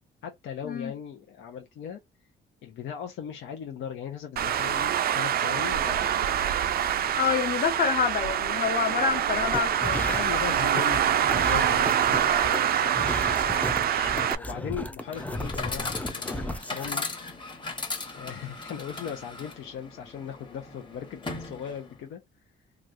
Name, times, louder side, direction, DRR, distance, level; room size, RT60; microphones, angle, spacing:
voice 1, 0.2-2.0 2.6-6.5 7.0-7.3 9.8-17.1 18.1-22.2, left 8 dB, 75° left, 0.7 m, -39 dB
Traffic noise roadway noise, 4.4-14.4, right 9 dB, 50° right, 0.4 m, -25 dB
voice 2, 7.1-10.0, left 6 dB, 45° left, 1.1 m, -27 dB
sound 1, 9.4-17.0, left 1 dB, 5° left, 0.5 m, -35 dB
Chatter / Coin (dropping), 15.0-22.0, left 3 dB, 25° left, 1.1 m, -38 dB
3.1 x 2.4 x 2.5 m
cardioid pair, 90°, 20 cm